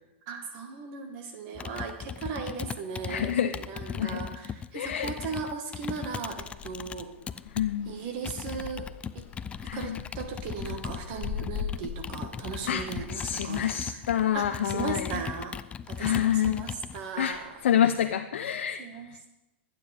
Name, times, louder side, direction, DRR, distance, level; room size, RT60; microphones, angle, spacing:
voice 1, 0.3-7.1 7.9-8.9 9.1-9.3 9.7-14.0 14.3-15.5 15.9-17.6 18.8-19.3, right 5 dB, 50° right, 5 dB, 1.9 m, -37 dB
Computer keyboard, 1.6-7.7 8.2-17.0, left 7 dB, 20° left, 0.5 m, -38 dB
voice 2, 3.1-3.5 3.9-4.2 4.7-5.1 7.5-8.0 9.6-10.0 12.7-12.8 13.1-15.1 16.0-16.7 17.2-17.4 17.6-18.8, left 10 dB, 70° left, 6 dB, 0.7 m, -27 dB
sound 1, 5.7-18.1, left 8 dB, 35° left, 1.7 m, -43 dB
24.0 x 9.3 x 3.6 m, 0.98 s
hypercardioid pair, 115°, 7 cm